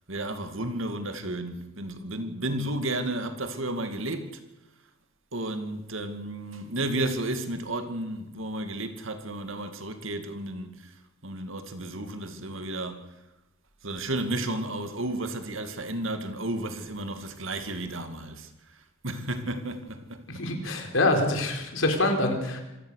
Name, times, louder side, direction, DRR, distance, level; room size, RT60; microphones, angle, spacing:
voice 1, 0.1-4.4 5.3-10.9 11.2-13.1 13.8-20.4, right 1 dB, 75° right, 2.3 m, -33 dB
voice 2, 20.3-22.6, left 2 dB, 75° left, 4.1 m, -25 dB
26.5 x 16.0 x 6.6 m
head